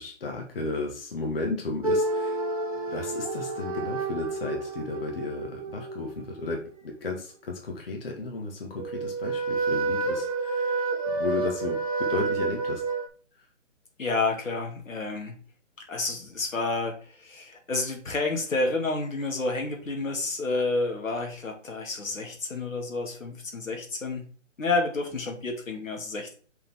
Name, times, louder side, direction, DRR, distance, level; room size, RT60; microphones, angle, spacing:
voice 1, 0.0-2.4 2.9-12.8, left 3 dB, 45° left, 1 dB, 1.7 m, -34 dB
sound 1, 1.8-6.7 8.8-13.1, right 3 dB, 30° right, 0.7 m, -29 dB
voice 2, 14.0-15.4 15.9-24.3 24.6-26.3, left 3 dB, 85° left, 1 dB, 2.6 m, -30 dB
6.1 x 5.2 x 3.6 m, 0.41 s
hypercardioid pair, 170°, 38 cm